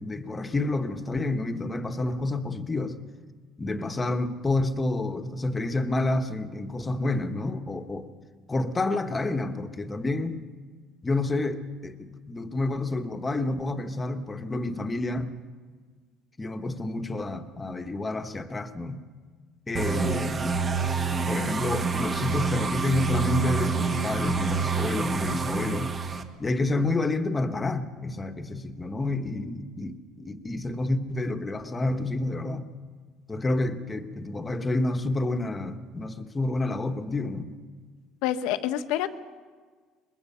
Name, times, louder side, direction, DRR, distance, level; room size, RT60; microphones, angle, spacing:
voice 1, 0.0-3.0 3.6-8.1 8.5-10.4 11.0-15.3 16.4-19.0 19.7-20.6 21.2-25.9 26.4-32.7 33.3-37.6, left 2 dB, 15° left, 8 dB, 1.2 m, -29 dB
sound 1, 19.7-26.2, right 4 dB, 25° right, 1.4 m, -27 dB
voice 2, 38.2-39.1, left 12 dB, 85° left, 10 dB, 1.1 m, -27 dB
23.0 x 21.5 x 5.6 m, 1.5 s
cardioid pair, 145°, 0 cm